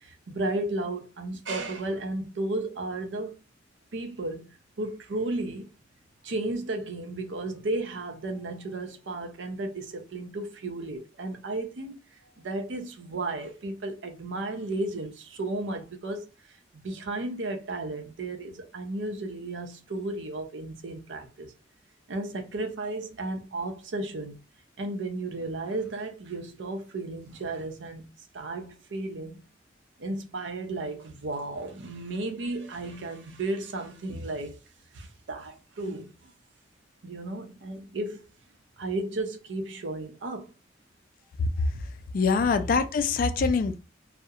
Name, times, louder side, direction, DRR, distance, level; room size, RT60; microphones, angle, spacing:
voice 1, 0.0-3.4 3.9-4.5 4.8-5.7 6.2-12.0 12.4-16.3 16.7-21.5 22.1-24.4 24.8-28.1 28.3-29.4 30.0-34.6 34.9-36.1 37.0-38.2 38.8-40.5, right 2 dB, 75° right, 0.5 m, -34 dB
voice 2, 42.1-43.8, left 5 dB, 50° left, 0.3 m, -24 dB
2.3 x 2.0 x 2.7 m
head